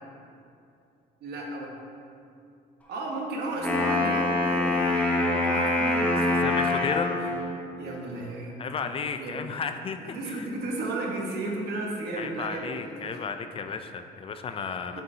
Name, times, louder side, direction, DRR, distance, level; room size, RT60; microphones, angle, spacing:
voice 1, 1.2-1.7 2.9-7.2 7.8-8.6 9.2-9.4 10.0-13.2 14.9-15.0, right 2 dB, 70° right, -1 dB, 1.2 m, -34 dB
Wind instrument woodwind instrument, 3.5-7.5, left 2 dB, 10° left, 0.9 m, -25 dB
voice 2, 6.4-7.1 8.6-10.0 10.3-10.4 12.2-15.0, left 6 dB, 35° left, 8 dB, 0.3 m, -33 dB
6.9 x 6.8 x 2.8 m, 2.5 s
cardioid pair, 110°, 17 cm